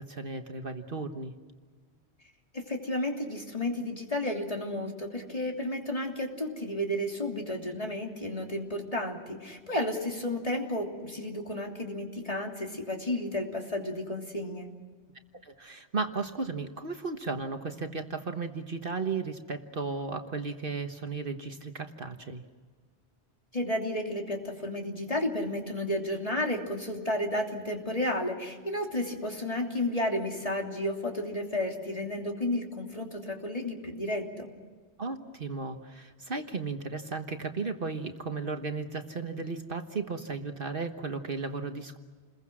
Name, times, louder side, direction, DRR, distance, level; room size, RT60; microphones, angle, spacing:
voice 1, 0.0-1.3 15.4-22.4 35.0-42.0, right 4 dB, 55° right, 6 dB, 1.5 m, -35 dB
voice 2, 2.5-14.7 23.5-34.5, left 1 dB, 30° left, 1 dB, 3.2 m, -32 dB
29.5 x 22.0 x 6.3 m, 1.5 s
omnidirectional pair, 1.1 m